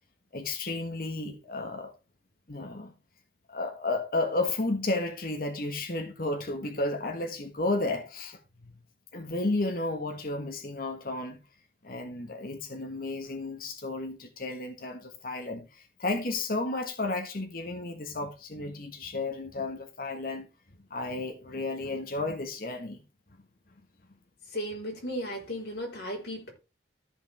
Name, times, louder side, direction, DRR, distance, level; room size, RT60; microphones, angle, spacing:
voice 1, 0.3-1.9 2.5-2.9 3.5-8.7 9.1-11.4 11.8-20.5 20.9-23.0, left 2 dB, 55° left, 1.3 m, -32 dB
voice 2, 24.5-26.5, equal, 70° left, 4.1 m, -35 dB
14.0 x 5.2 x 3.5 m
head